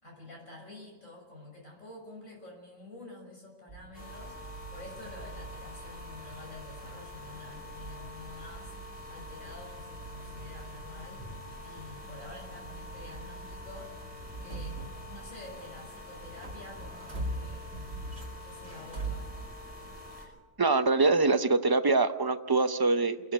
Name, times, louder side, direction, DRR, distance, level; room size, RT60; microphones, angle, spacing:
voice 1, 0.0-11.3 11.6-14.0 14.4-17.7 18.4-19.3, left 2 dB, 75° left, 0 dB, 6.7 m, -48 dB
sound 1, 3.7-15.8 16.1-20.1, right 2 dB, 50° right, 2.2 m, -44 dB
sound 2, 3.9-20.3, left 2 dB, 15° left, 5.9 m, -46 dB
voice 2, 20.6-23.3, right 3 dB, 30° right, 9 dB, 0.4 m, -24 dB
28.0 x 11.5 x 8.1 m, 1.3 s
omnidirectional pair, 1.4 m